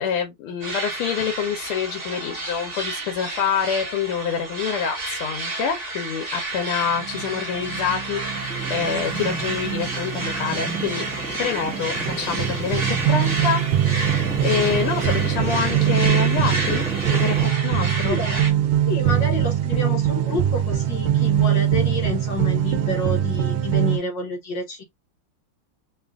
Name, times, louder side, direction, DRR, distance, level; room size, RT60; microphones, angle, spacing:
voice 1, 0.0-11.1 11.4-13.9 14.4-18.2, left 7 dB, 85° left, 1.7 m, -26 dB
sound 1, 0.6-18.5, right 2 dB, 25° right, 1.1 m, -31 dB
sound 2, 6.8-24.0, right 10 dB, 70° right, 1.3 m, -23 dB
sound 3, 8.3-17.5, right 1 dB, 5° left, 0.6 m, -34 dB
voice 2, 18.0-18.6 18.9-24.8, left 2 dB, 65° left, 1.5 m, -29 dB
3.7 x 2.4 x 3.4 m
omnidirectional pair, 2.3 m